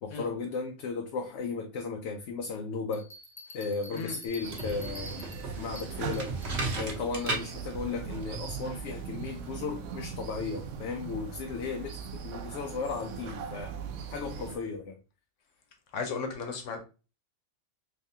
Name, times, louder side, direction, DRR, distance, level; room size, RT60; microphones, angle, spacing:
voice 1, 0.0-3.1 3.5-5.3 5.6-6.4 6.8-13.7 14.1-15.0, left 4 dB, 70° left, 0.8 m, -35 dB
Bell, 2.9-6.6, left 2 dB, 20° left, 0.4 m, -48 dB
voice 2, 3.9-4.2 15.9-16.8, left 4 dB, 90° left, 1.2 m, -35 dB
sound 1, 4.3-9.7, right 2 dB, 65° right, 1.2 m, -37 dB
sound 2, 4.4-14.6, right 7 dB, 90° right, 0.9 m, -40 dB
3.5 x 3.2 x 2.7 m
omnidirectional pair, 1.2 m